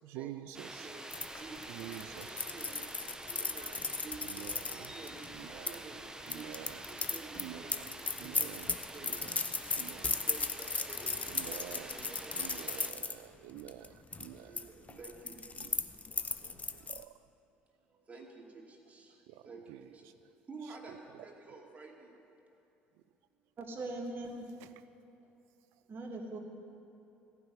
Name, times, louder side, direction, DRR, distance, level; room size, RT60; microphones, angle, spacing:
voice 1, 0.0-0.9 1.7-2.2 3.6-3.7 4.3-4.6 5.3-5.8 6.3-6.8 7.4-7.8 8.2-8.6 9.1-9.4 9.8-10.0 11.3-11.9 12.4-13.9 14.2-14.5 14.9-15.0 16.9-17.1 19.3-19.4 19.7-19.8, right 13 dB, 70° right, 14 dB, 0.5 m, -47 dB
sound 1, 0.5-12.9, right 2 dB, 10° right, 1.0 m, -47 dB
voice 2, 0.7-1.0 1.4-2.8 3.3-3.7 4.0-6.0 6.3-9.1 10.0-13.0 14.4-15.6 18.1-19.1 19.4-19.6 20.5-22.1, right 4 dB, 30° right, -1 dB, 2.7 m, -51 dB
sound 2, 1.1-5.8 6.3-13.1 13.6-13.9 14.1-14.6 14.9-17.0, left 4 dB, 25° left, 0.8 m, -36 dB
voice 3, 23.6-24.5 25.9-26.4, right 2 dB, 45° right, 1 dB, 2.2 m, -40 dB
14.5 x 6.1 x 9.2 m, 2.9 s
hypercardioid pair, 60°, 5 cm